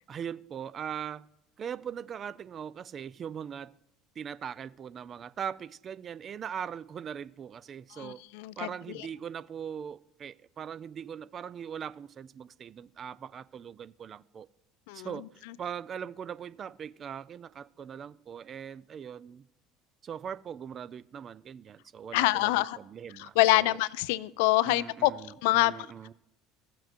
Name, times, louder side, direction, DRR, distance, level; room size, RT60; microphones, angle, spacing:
voice 1, 0.1-1.3 1.6-3.7 4.2-8.2 8.6-14.5 14.9-19.4 20.0-23.8 24.6-26.1, right 8 dB, 35° right, 0.3 m, -40 dB
voice 2, 7.9-9.1 14.9-15.5 22.1-22.8 23.2-25.1 25.4-25.7, left 18 dB, 65° left, 0.3 m, -26 dB
16.0 x 7.4 x 2.5 m
figure-of-eight pair, 65°, 0 cm